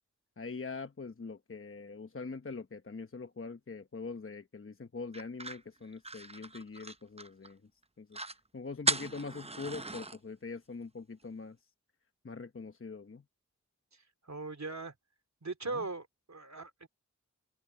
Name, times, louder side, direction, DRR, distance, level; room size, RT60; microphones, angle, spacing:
voice 1, 0.4-7.6 8.0-8.2 8.5-11.6 12.2-13.2 15.7-15.8, left 4 dB, 45° left, 1.0 m, -43 dB
sound 1, 5.1-7.5 7.8-7.9 8.1-8.4 8.8-10.2, right 2 dB, 20° right, 0.7 m, -36 dB
voice 2, 13.9-14.9 15.4-16.9, right 3 dB, 60° right, 3.1 m, -40 dB
open air
cardioid pair, 40°, 31 cm